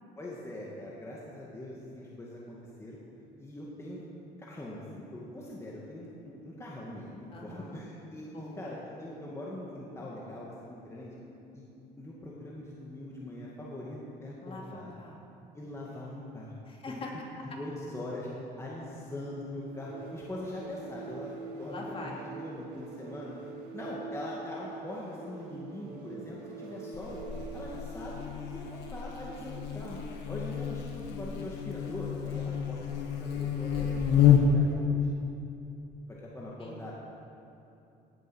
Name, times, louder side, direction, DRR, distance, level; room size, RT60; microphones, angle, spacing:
voice 1, 0.2-3.0 3.4-4.1 4.4-11.1 11.5-11.7 12.0-14.9 15.5-16.6 17.4-18.3 18.6-23.3 23.7-27.2 27.5-28.2 28.5-30.0 30.3-35.1 36.1-36.9, left 1 dB, 15° left, -5 dB, 2.2 m, -42 dB
voice 2, 7.3-7.8 8.2-8.6 14.4-15.3 16.6-17.5 21.7-22.3 36.6-36.9, left 2 dB, 35° left, -2 dB, 2.7 m, -43 dB
sound 1, 19.6-28.0, right 4 dB, 90° right, 1.8 m, -44 dB
Buzz, 26.9-34.7, left 8 dB, 85° left, 1.5 m, -29 dB
17.5 x 7.8 x 6.4 m, 2.7 s
cardioid pair, 110°, 17 cm